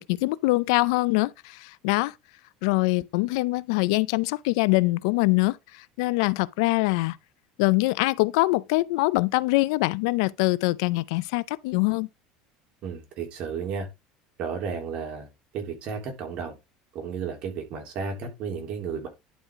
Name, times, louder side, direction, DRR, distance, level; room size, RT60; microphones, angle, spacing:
voice 1, 0.0-2.1 2.6-7.2 7.6-12.1, left 22 dB, 80° left, 0.5 m, -24 dB
voice 2, 12.8-13.9 14.4-15.3 15.5-16.5 16.9-19.1, right 6 dB, 50° right, 3.3 m, -33 dB
11.0 x 4.9 x 3.6 m
supercardioid pair, 125°, 3 cm